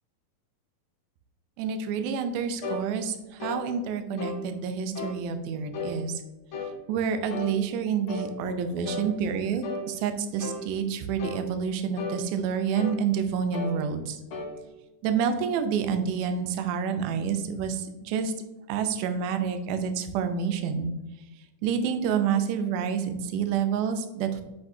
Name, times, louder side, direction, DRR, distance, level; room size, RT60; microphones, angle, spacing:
voice 1, 1.6-6.2 6.9-14.2 15.0-18.3 18.7-20.9 21.6-24.4, right 7 dB, 80° right, 7 dB, 2.1 m, -28 dB
sound 1, 2.6-2.9 3.4-3.6 4.2-4.4 4.9-5.2 5.7-6.0 6.5-6.8 7.3-7.6 8.1-8.3 8.8-9.1 9.6-9.9 10.4-10.6 11.2-11.5 12.0-12.2 12.7-13.0 13.5-13.8 14.3-14.5, left 3 dB, 75° left, 1.2 m, -34 dB
8.2 x 5.3 x 2.8 m, 1.1 s
omnidirectional pair, 3.8 m